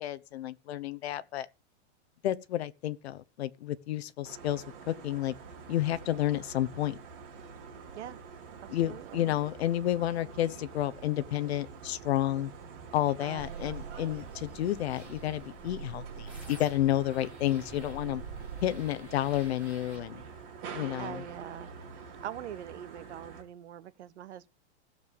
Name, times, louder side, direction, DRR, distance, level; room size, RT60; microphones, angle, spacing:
voice 1, 0.0-1.5 2.2-5.3 5.7-7.0 8.7-12.5 12.9-18.2 18.6-20.2 20.7-21.2, left 13 dB, 65° left, 1.1 m, -31 dB
sound 1, 4.3-23.4, right 5 dB, 50° right, 4.5 m, -47 dB
sound 2, 8.4-20.5, right 8 dB, 25° right, 1.3 m, -56 dB
voice 2, 8.8-9.3 13.2-13.7 21.0-21.7 22.2-24.5, right 11 dB, 75° right, 1.3 m, -43 dB
sound 3, 13.4-20.0, right 4 dB, 5° right, 4.3 m, -46 dB
16.0 x 7.0 x 7.0 m
supercardioid pair, 175°, 35 cm